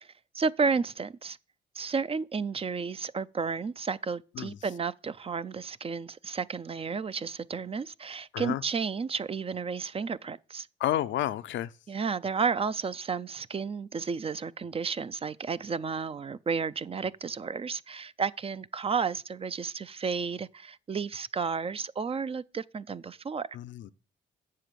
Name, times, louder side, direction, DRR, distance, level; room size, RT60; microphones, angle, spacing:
voice 1, 0.3-1.4 1.7-10.7 11.9-23.5, right 5 dB, 30° right, 0.4 m, -32 dB
voice 2, 10.8-11.7 23.5-23.9, left 12 dB, 70° left, 0.6 m, -30 dB
7.6 x 7.2 x 6.8 m
cardioid pair, 90°, 20 cm